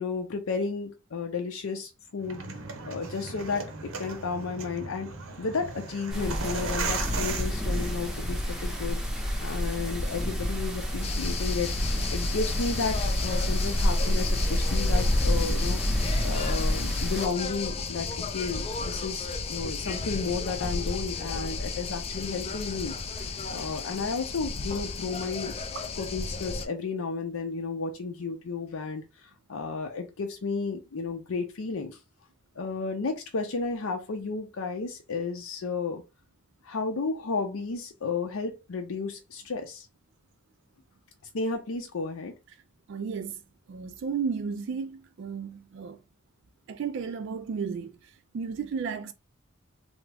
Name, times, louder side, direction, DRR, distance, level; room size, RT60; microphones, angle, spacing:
voice 1, 0.0-2.4 2.8-5.1 5.4-11.8 12.1-15.8 16.2-22.9 23.5-25.5 26.0-32.0 32.6-36.0 36.6-39.9 41.3-42.3, left 4 dB, 80° left, 0.5 m, -33 dB
sound 1, 2.2-8.4, right 4 dB, 75° right, 0.7 m, -37 dB
sound 2, 6.1-17.3, equal, 5° right, 0.7 m, -29 dB
sound 3, 11.0-26.7, left 3 dB, 30° left, 0.3 m, -33 dB
voice 2, 42.9-43.4 43.7-46.0 46.7-49.1, right 6 dB, 60° right, 0.3 m, -33 dB
3.5 x 2.0 x 3.3 m
head